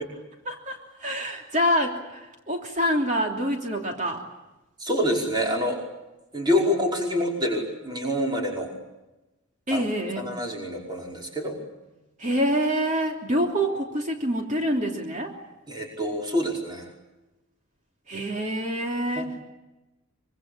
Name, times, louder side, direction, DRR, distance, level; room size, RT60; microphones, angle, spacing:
voice 1, 0.4-4.2 9.7-10.3 12.2-15.4 18.1-19.4, equal, 35° right, 2 dB, 3.1 m, -26 dB
voice 2, 4.8-5.8 6.3-8.7 9.7-9.8 10.2-11.6 15.7-16.9 19.2-19.4, left 1 dB, 20° right, 0 dB, 5.2 m, -26 dB
25.0 x 24.5 x 8.6 m, 1.0 s
head